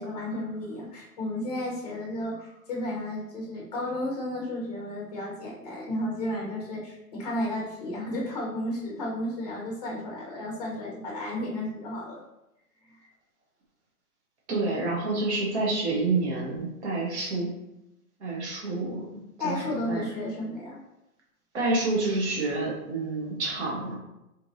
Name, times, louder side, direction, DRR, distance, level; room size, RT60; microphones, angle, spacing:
voice 1, 0.0-12.2 12.8-13.1 19.4-20.8, left 1 dB, 25° left, -2 dB, 0.9 m, -33 dB
voice 2, 14.5-17.5 18.2-19.1 19.4-20.1 21.5-23.9, right 3 dB, 45° right, -4 dB, 1.3 m, -28 dB
4.4 x 3.2 x 2.6 m, 0.89 s
hypercardioid pair, 175°, 45 cm